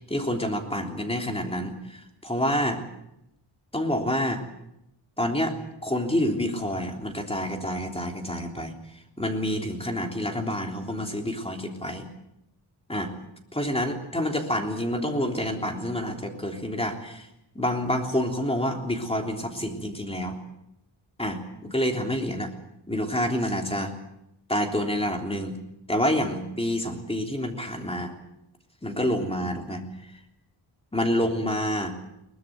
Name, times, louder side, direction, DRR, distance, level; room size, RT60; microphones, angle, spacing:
voice 1, 0.1-2.8 3.7-4.4 5.2-5.6 5.8-8.7 9.2-12.0 12.9-13.1 13.5-17.3 17.6-20.4 21.2-22.5 22.9-23.9 24.5-25.6 25.9-28.1 28.8-29.8 30.9-31.9, equal, 10° left, 3 dB, 3.4 m, -28 dB
22.5 x 19.5 x 7.7 m, 0.83 s
wide cardioid pair, 105°, 48 cm